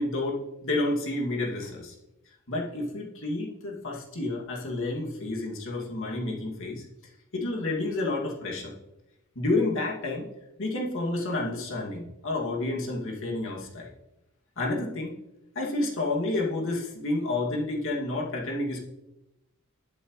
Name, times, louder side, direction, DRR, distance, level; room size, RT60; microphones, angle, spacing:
voice 1, 0.0-1.9 2.5-6.8 7.3-8.7 9.4-10.3 10.6-13.9 14.6-15.1 15.5-18.8, left 2 dB, 65° left, -2 dB, 2.4 m, -30 dB
20.5 x 7.8 x 3.2 m, 0.95 s
head